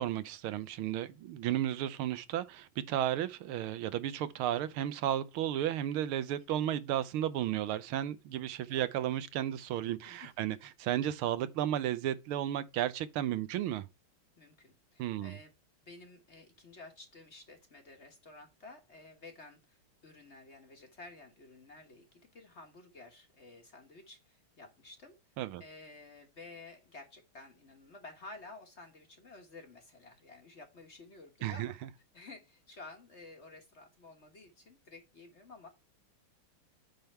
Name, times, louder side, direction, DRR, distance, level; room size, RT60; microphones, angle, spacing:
voice 1, 0.0-13.9 15.0-15.4 25.4-25.6 31.4-31.7, right 11 dB, 85° right, 1.6 m, -33 dB
voice 2, 10.1-10.5 14.4-15.5 15.8-25.2 25.6-31.7 32.1-35.7, left 3 dB, 40° left, 1.3 m, -52 dB
9.3 x 3.6 x 4.3 m
omnidirectional pair, 2.3 m